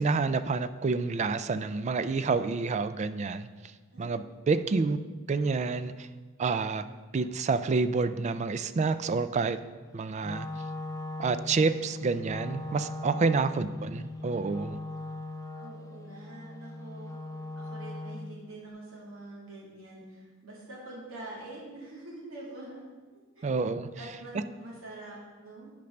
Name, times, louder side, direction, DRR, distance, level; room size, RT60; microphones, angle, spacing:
voice 1, 0.0-3.5 4.0-5.0 5.3-5.9 6.4-6.8 7.1-9.6 9.9-10.5 11.2-14.8 23.4-23.9, right 4 dB, 35° right, 13 dB, 0.3 m, -28 dB
Wind instrument woodwind instrument, 10.2-18.4, left 2 dB, 15° left, 0.5 m, -39 dB
voice 2, 15.6-17.2 17.6-22.8 23.4-23.5 24.0-25.7, right 2 dB, 85° right, -5 dB, 2.8 m, -45 dB
8.4 x 5.2 x 5.8 m, 1.4 s
head